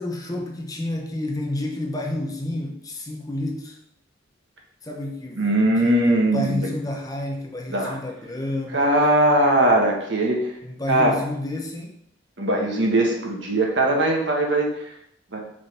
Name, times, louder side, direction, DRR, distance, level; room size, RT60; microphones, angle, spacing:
voice 1, 0.0-3.8 4.8-5.5 5.8-8.9 10.6-11.9, left 1 dB, 20° left, 1 dB, 0.8 m, -30 dB
voice 2, 5.4-6.7 7.7-8.0 8.7-10.5 10.9-11.1 12.4-14.7 15.3-15.4, right 1 dB, 65° right, 0 dB, 1.5 m, -20 dB
6.5 x 4.0 x 5.2 m, 0.72 s
head